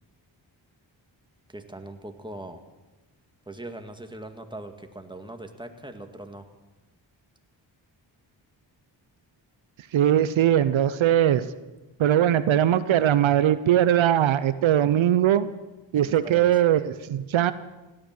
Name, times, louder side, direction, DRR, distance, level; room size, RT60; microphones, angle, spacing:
voice 1, 1.5-2.6 3.5-6.5 16.0-16.6, right 1 dB, 10° right, 6 dB, 1.9 m, -40 dB
voice 2, 9.9-11.5 12.0-15.5 15.9-17.5, right 11 dB, 80° right, 14 dB, 0.7 m, -20 dB
16.5 x 10.0 x 7.6 m, 1.1 s
cardioid pair, 50°, 46 cm